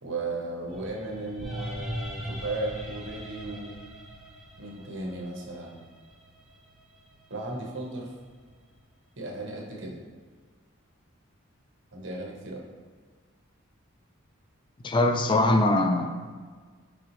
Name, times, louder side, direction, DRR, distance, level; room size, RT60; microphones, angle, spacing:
voice 1, 0.0-3.7 4.6-5.8 7.3-8.1 9.2-10.0 11.9-12.6, right 2 dB, 60° right, -1 dB, 1.2 m, -35 dB
sound 1, 0.7-8.8, equal, ahead, 0.8 m, -41 dB
voice 2, 14.8-16.1, left 2 dB, 25° left, 6 dB, 0.3 m, -22 dB
5.9 x 5.2 x 3.1 m, 1.5 s
head